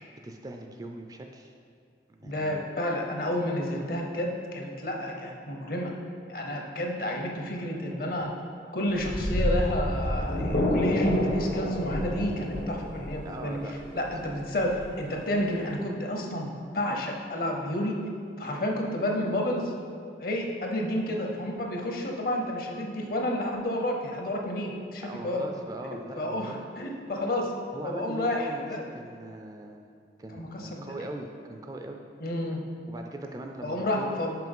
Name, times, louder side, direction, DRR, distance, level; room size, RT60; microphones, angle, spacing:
voice 1, 0.2-1.5 2.1-2.7 13.2-13.9 25.0-26.6 27.7-29.9 30.2-32.0 32.9-34.2, right 1 dB, 20° right, 3 dB, 0.3 m, -40 dB
voice 2, 2.2-5.9 6.3-8.3 8.7-13.6 13.9-18.0 18.4-19.7 20.2-25.5 26.2-27.5 27.8-28.8 30.3-30.9 32.2-32.6 33.6-34.4, left 1 dB, 50° left, 1 dB, 0.8 m, -30 dB
sound 1, 8.9-15.7, left 1 dB, 90° left, 1.3 m, -30 dB
5.9 x 5.3 x 5.4 m, 2.3 s
head